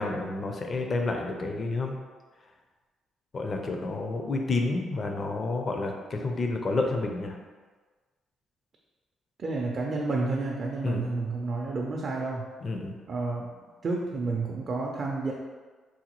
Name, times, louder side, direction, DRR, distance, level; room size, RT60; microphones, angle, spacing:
voice 1, 0.0-1.9 3.3-7.3 10.8-11.0 12.6-12.9, left 3 dB, 45° left, 3 dB, 0.4 m, -30 dB
voice 2, 9.4-12.4 13.1-13.5 13.8-15.3, right 3 dB, 45° right, -1 dB, 0.4 m, -30 dB
3.9 x 2.2 x 2.9 m, 1.4 s
cardioid pair, 90°, 0 cm